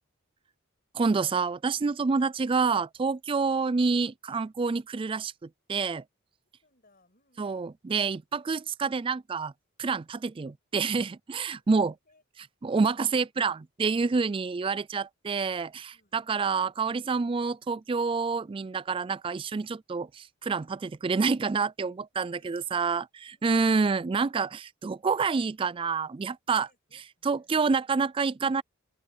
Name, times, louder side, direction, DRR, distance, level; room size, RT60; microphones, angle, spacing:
voice 1, 0.9-6.0 7.4-9.5 9.8-11.9 12.6-15.7 16.1-26.7 27.2-28.6, right 4 dB, 25° right, 0.3 m, -28 dB
voice 2, 6.6-7.7 11.5-12.2 15.6-16.2 22.1-23.0 23.3-23.8 26.5-27.6, left 2 dB, 40° left, 7.1 m, -67 dB
open air
head